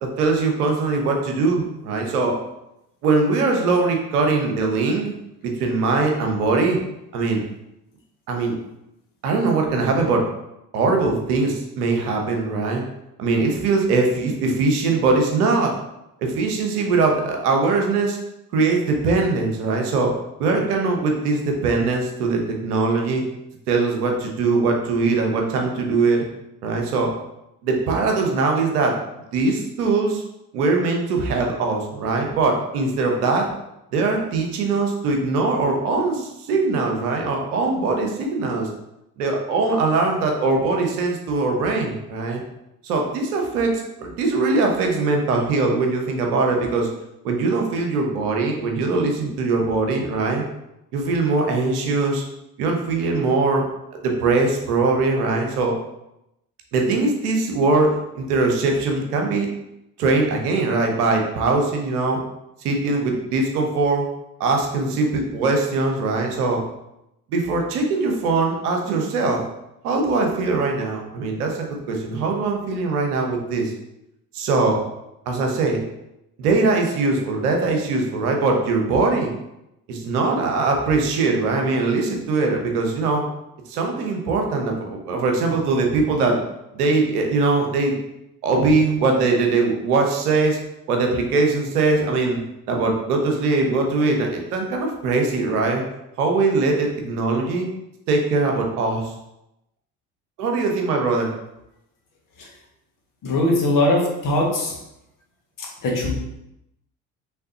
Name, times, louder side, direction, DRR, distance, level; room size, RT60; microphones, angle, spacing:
voice 1, 0.0-2.4 3.0-5.1 5.4-6.8 7.1-7.4 8.3-8.6 9.2-10.3 10.7-12.8 13.2-15.7 16.2-18.2 18.5-20.1 20.4-23.2 23.7-26.3 26.6-27.1 27.6-29.0 29.3-30.2 30.5-33.5 33.9-38.7 39.2-42.4 42.8-46.9 47.2-50.4 50.9-52.2 52.6-53.6 54.0-55.7 56.7-59.5 60.0-62.2 62.6-64.1 64.4-66.6 67.3-69.4 69.8-73.7 74.3-74.8 75.3-75.8 76.4-79.3 79.9-83.2 83.7-86.4 86.7-87.9 88.4-90.6 90.9-92.4 92.7-95.8 96.2-97.7 98.1-99.0 100.4-101.3, right 3 dB, 75° right, 2 dB, 1.0 m, -21 dB
voice 2, 103.2-104.7 105.8-106.1, left 1 dB, 45° left, -2 dB, 1.6 m, -20 dB
5.6 x 3.3 x 2.8 m, 0.87 s
figure-of-eight pair, 60°, 46 cm